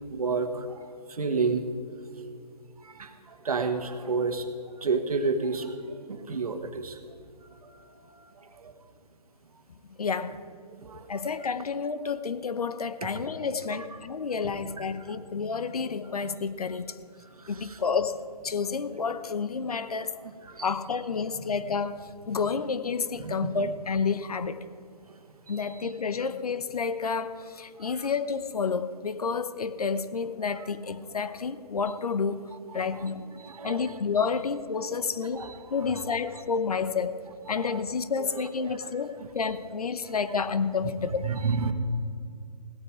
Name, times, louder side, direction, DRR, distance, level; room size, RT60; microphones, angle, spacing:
voice 1, 0.1-1.7 2.8-4.5 4.8-7.0 7.5-8.7 10.7-11.2 13.7-13.8 14.8-14.9 17.3-17.8 20.4-20.7 23.2-23.7 25.4-25.9 27.8-28.1 32.7-34.0 35.3-35.5 35.8-36.4 37.5-37.8 38.3-38.9 39.2-39.3 40.4-40.5 40.8-40.9 41.2-41.7, right 4 dB, 60° right, 7 dB, 1.5 m, -32 dB
voice 2, 10.0-10.4 11.1-17.0 17.5-18.2 18.4-20.2 20.6-24.7 25.5-32.4 32.7-33.2 33.6-37.2 37.5-41.2, left 5 dB, 60° left, 13 dB, 0.8 m, -30 dB
17.0 x 11.5 x 4.9 m, 2.3 s
hypercardioid pair, 160°, 21 cm